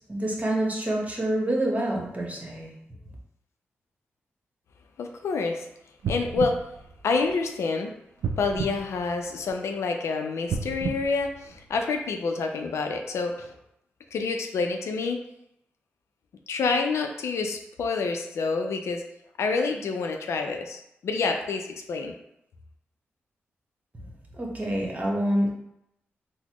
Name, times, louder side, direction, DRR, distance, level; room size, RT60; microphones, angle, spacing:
voice 1, 0.1-2.7 24.4-25.5, right 1 dB, 30° right, -1 dB, 1.0 m, -27 dB
voice 2, 5.0-5.7 6.1-6.6 7.0-7.9 8.4-13.5 14.1-15.2 16.5-19.0 19.4-22.1, left 4 dB, 80° left, 4 dB, 0.4 m, -28 dB
sound 1, 6.0-7.7 8.2-9.8 10.4-12.1 12.6-12.7, right 5 dB, 85° right, 0.4 m, -33 dB
4.0 x 2.1 x 2.9 m, 0.80 s
supercardioid pair, 45°, 5 cm